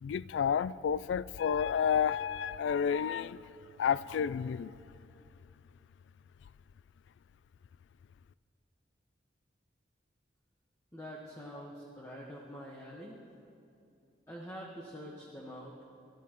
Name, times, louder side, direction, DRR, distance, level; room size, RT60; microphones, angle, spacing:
voice 1, 0.0-3.5 3.8-4.7, left 7 dB, 85° left, 17 dB, 0.3 m, -30 dB
voice 2, 10.9-13.2 14.3-15.8, equal, 15° left, -3 dB, 1.2 m, -46 dB
29.5 x 13.0 x 3.0 m, 2.7 s
head